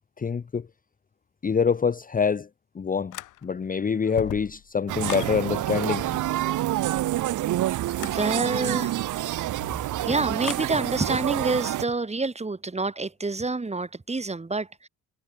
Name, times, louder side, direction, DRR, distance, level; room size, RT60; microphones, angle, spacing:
voice 1, 0.2-0.6 1.4-2.5 2.8-3.1 3.4-6.0, left 6 dB, 30° left, 0.9 m, -25 dB
sound 1, 3.1-3.7 4.0-5.4 7.9-8.2 10.4-10.7, left 16 dB, 90° left, 3.2 m, -37 dB
sound 2, 4.9-11.8, right 14 dB, 80° right, 2.0 m, -27 dB
voice 2, 8.0-9.0 10.0-14.9, right 3 dB, 20° right, 5.9 m, -28 dB
cardioid pair, 90°, 30 cm